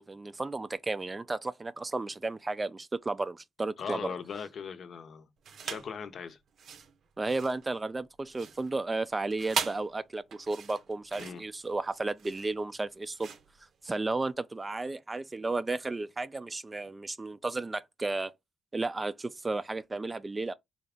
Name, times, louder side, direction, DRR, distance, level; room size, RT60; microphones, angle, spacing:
voice 1, 0.0-4.1 7.2-13.3 13.8-18.3 18.7-20.5, right 3 dB, 20° right, 0.4 m, -33 dB
voice 2, 3.8-5.3 5.6-6.4 11.2-11.4, left 6 dB, 55° left, 0.6 m, -39 dB
sound 1, 5.4-6.0 6.5-14.3, right 6 dB, 60° right, 0.7 m, -40 dB
3.9 x 2.4 x 3.5 m
cardioid pair, 90°, 0 cm